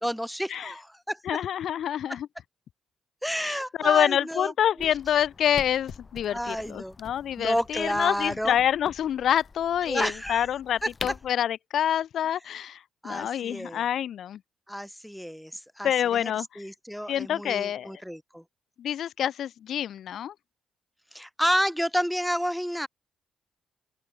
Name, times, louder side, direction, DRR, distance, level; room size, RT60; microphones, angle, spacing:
voice 1, 0.0-1.2 3.2-4.5 4.8-4.9 6.3-7.0 7.4-8.6 9.8-10.5 10.8-10.9 13.0-13.8 14.7-18.4 21.1-22.9, equal, ahead, 0.6 m, -30 dB
voice 2, 1.3-2.3 3.4-14.4 15.8-16.6 17.1-17.9 18.8-20.3, left 10 dB, 70° left, 0.4 m, -27 dB
sound 1, 4.8-11.3, left 4 dB, 35° left, 1.8 m, -45 dB
open air
supercardioid pair, 55°, 0 cm